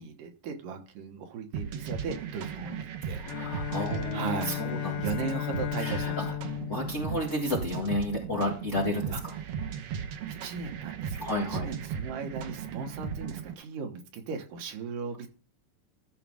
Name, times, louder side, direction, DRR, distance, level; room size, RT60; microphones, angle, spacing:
voice 1, 0.0-3.2 4.1-6.4 9.1-9.5 10.3-15.3, right 5 dB, 85° right, 4 dB, 3.0 m, -37 dB
sound 1, 1.5-13.5, right 7 dB, 65° right, 1.5 m, -37 dB
Bowed string instrument, 3.2-8.1, left 15 dB, 85° left, 2.3 m, -35 dB
voice 2, 3.2-4.9 5.8-6.3 6.7-9.1 11.1-11.7, left 1 dB, 30° left, -2 dB, 1.5 m, -31 dB
13.5 x 6.2 x 3.5 m, 0.37 s
omnidirectional pair, 3.7 m